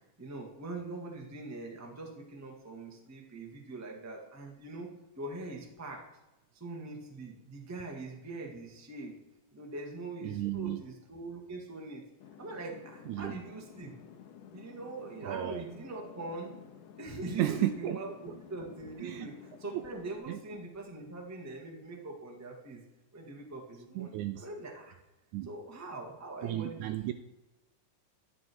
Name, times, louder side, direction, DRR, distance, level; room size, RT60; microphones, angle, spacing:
voice 1, 0.2-4.9 5.1-6.0 6.6-9.2 9.5-12.0 12.4-13.9 14.5-16.5 17.0-22.8 23.1-24.9 25.4-26.9, right 2 dB, 10° right, 0 dB, 0.7 m, -42 dB
voice 2, 10.2-10.8 13.1-13.4 15.2-15.6 17.4-18.0 18.3-18.4 19.0-19.3 20.3-20.4 24.0-24.5 25.3-25.5 26.4-27.1, right 14 dB, 80° right, 9 dB, 1.8 m, -33 dB
sound 1, 12.2-20.2, left 8 dB, 75° left, 2.5 m, -53 dB
12.0 x 10.5 x 4.6 m, 0.98 s
omnidirectional pair, 3.8 m